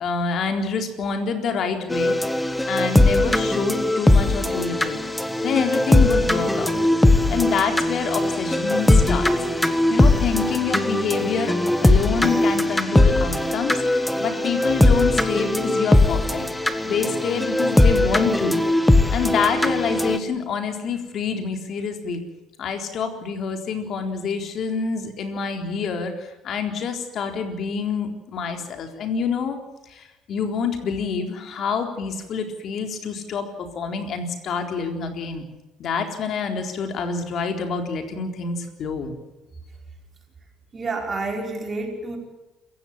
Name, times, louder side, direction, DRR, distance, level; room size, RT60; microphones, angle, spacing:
voice 1, 0.0-2.2 2.7-5.0 5.4-6.8 7.3-9.3 9.9-11.5 11.8-16.5 16.8-18.6 19.1-22.2 22.6-29.6 29.9-33.5 33.7-35.4 35.8-39.2, left 5 dB, 50° left, 5 dB, 3.9 m, -27 dB
sound 1, 1.9-20.2, left 1 dB, 5° left, 1.5 m, -20 dB
voice 2, 40.7-42.2, right 3 dB, 25° right, 2 dB, 5.5 m, -29 dB
27.0 x 16.0 x 7.5 m, 1.0 s
cardioid pair, 140°, 0 cm